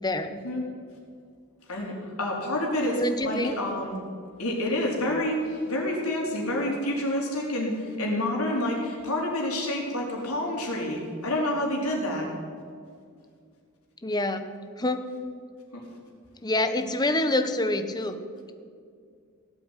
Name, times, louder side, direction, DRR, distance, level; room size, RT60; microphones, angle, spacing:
voice 1, 0.0-0.4 3.0-3.6 14.0-14.5 14.8-15.1 16.4-18.2, left 1 dB, 20° left, 8 dB, 1.0 m, -26 dB
voice 2, 1.7-4.0 4.4-12.3 15.7-15.8, left 1 dB, 80° left, -1 dB, 4.3 m, -28 dB
17.5 x 8.5 x 9.1 m, 2.2 s
head